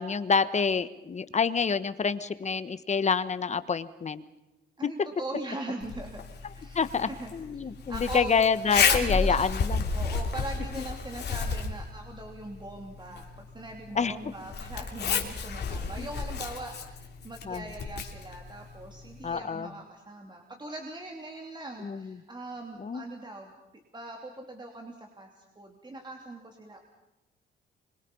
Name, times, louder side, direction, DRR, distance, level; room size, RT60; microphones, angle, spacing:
voice 1, 0.0-4.2 6.7-9.8 13.9-14.1 16.0-16.1 17.4-17.7 19.2-19.7 21.8-22.1 22.8-23.0, left 5 dB, 35° left, 13 dB, 1.3 m, -27 dB
voice 2, 4.8-6.2 6.5-8.3 8.8-9.4 9.9-23.5 23.9-26.8, right 2 dB, 20° right, 2 dB, 3.1 m, -41 dB
Zipper (clothing), 5.8-19.4, left 5 dB, 55° left, 3.1 m, -32 dB
25.0 x 23.5 x 5.5 m, 0.98 s
cardioid pair, 90°, 20 cm